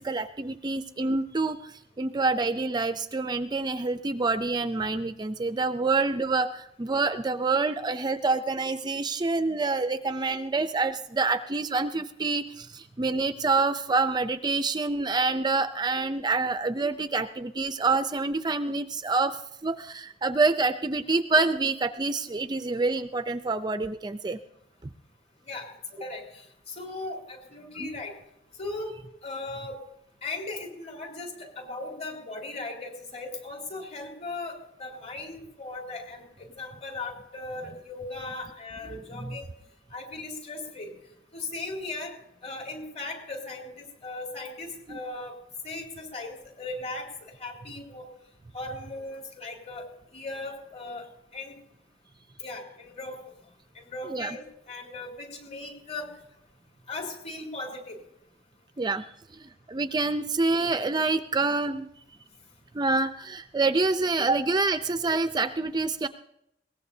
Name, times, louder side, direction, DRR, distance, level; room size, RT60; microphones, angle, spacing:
voice 1, 0.0-24.4 27.8-27.9 38.9-39.4 44.9-45.0 54.0-54.4 58.8-59.1 59.4-61.9 62.7-66.1, right 3 dB, 25° right, 10 dB, 0.5 m, -27 dB
voice 2, 25.5-26.4 26.7-28.1 28.6-28.9 29.2-29.8 30.2-39.5 39.9-40.9 41.3-42.1 42.4-45.3 45.6-47.1 47.4-48.1 48.5-49.9 50.1-51.1 51.3-51.6 52.4-53.2 53.8-56.1 56.9-58.0, left 2 dB, 35° left, 1 dB, 4.1 m, -38 dB
21.5 x 18.5 x 2.7 m, 0.79 s
head